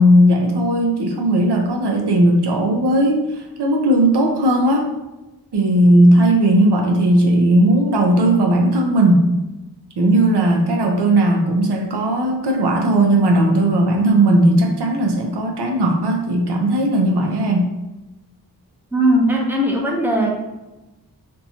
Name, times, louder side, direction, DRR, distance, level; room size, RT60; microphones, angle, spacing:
voice 1, 0.0-4.9 5.5-9.3 10.0-17.7, right 1 dB, 85° right, 1 dB, 0.5 m, -16 dB
voice 2, 18.9-20.3, right 1 dB, 5° right, -1 dB, 0.6 m, -18 dB
2.6 x 2.2 x 2.7 m, 1.0 s
wide cardioid pair, 45°, 39 cm